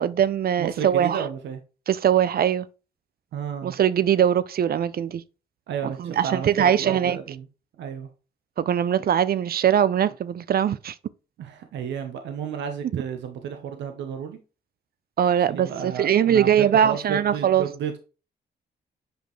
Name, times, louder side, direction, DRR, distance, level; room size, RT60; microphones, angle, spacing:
voice 1, 0.0-1.2 1.9-2.7 3.6-5.2 5.8-7.2 8.6-10.9 12.9-13.0 15.2-17.7, right 9 dB, 55° right, 0.6 m, -21 dB
voice 2, 0.6-1.6 3.3-3.7 5.7-7.5 7.8-8.1 11.4-14.4 15.5-18.0, right 7 dB, 80° right, 0.9 m, -32 dB
7.9 x 5.1 x 3.1 m
cardioid pair, 65°, 18 cm